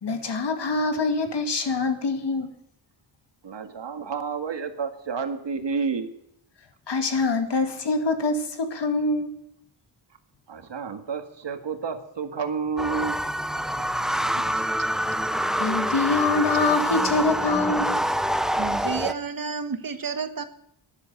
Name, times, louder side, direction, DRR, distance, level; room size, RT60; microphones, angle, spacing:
voice 1, 0.0-2.5 6.9-9.3 15.3-18.0, left 3 dB, 60° left, 6 dB, 2.3 m, -25 dB
voice 2, 3.4-6.1 10.5-13.2 13.8-13.9, right 5 dB, 65° right, 7 dB, 2.0 m, -30 dB
sound 1, 12.8-19.1, equal, ahead, 0.6 m, -26 dB
voice 3, 18.6-20.4, right 5 dB, 45° right, 9 dB, 1.4 m, -30 dB
12.0 x 11.0 x 8.0 m, 0.74 s
wide cardioid pair, 125°, 47 cm